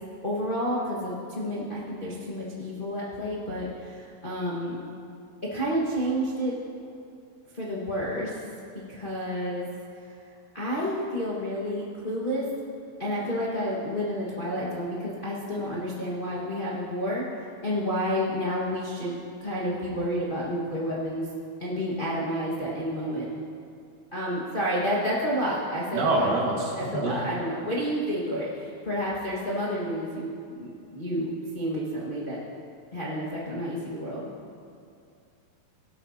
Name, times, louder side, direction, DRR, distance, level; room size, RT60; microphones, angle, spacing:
voice 1, 0.2-4.8 5.5-6.6 7.5-8.5 8.7-9.7 10.5-12.5 13.0-17.2 17.6-21.3 21.6-23.3 24.1-26.3 26.7-32.4 32.9-34.3, equal, 55° left, -6 dB, 0.5 m, -30 dB
voice 2, 25.9-27.2, right 2 dB, 70° right, -2 dB, 3.3 m, -26 dB
17.5 x 12.5 x 2.8 m, 2.4 s
omnidirectional pair, 4.0 m